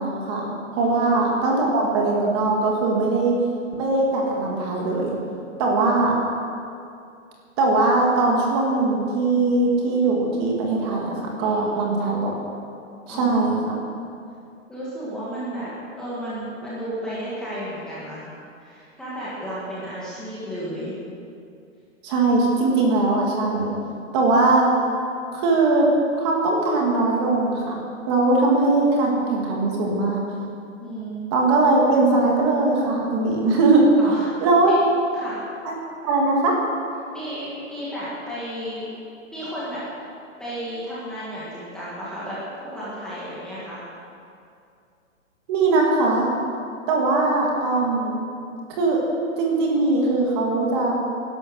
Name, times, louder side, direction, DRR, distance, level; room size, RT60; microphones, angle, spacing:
voice 1, 0.0-3.4 3.8-5.2 5.6-6.1 7.6-12.3 13.1-13.8 22.0-23.7 24.1-24.6 25.3-25.9 26.2-27.8 28.1-30.2 31.3-33.8 34.4-34.7 35.6-35.7 36.0-36.5 45.5-46.3 46.9-48.2 48.7-49.0 49.4-50.9, right 3 dB, 20° right, -1 dB, 1.9 m, -20 dB
voice 2, 0.7-1.1 5.7-6.0 6.2-6.3 11.4-11.9 13.1-13.7 14.7-18.3 18.6-21.0 30.8-31.3 34.0-34.3 35.1-35.4 37.1-38.9 39.3-39.8 40.4-43.8, right 1 dB, ahead, -10 dB, 1.6 m, -33 dB
18.5 x 11.5 x 6.4 m, 2.5 s
hypercardioid pair, 180°, 39 cm